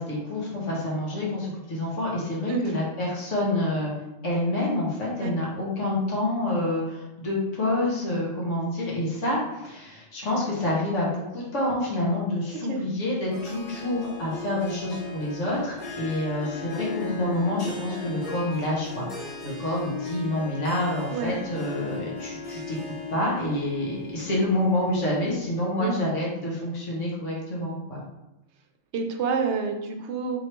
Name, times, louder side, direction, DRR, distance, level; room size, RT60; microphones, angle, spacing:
voice 1, 0.0-3.9 4.2-28.0, left 1 dB, 70° left, -5 dB, 1.6 m, -28 dB
Harp, 13.3-25.5, left 3 dB, 40° left, 1.0 m, -38 dB
voice 2, 28.9-30.4, right 5 dB, 65° right, 4 dB, 0.9 m, -28 dB
3.6 x 3.1 x 4.4 m, 0.94 s
omnidirectional pair, 1.3 m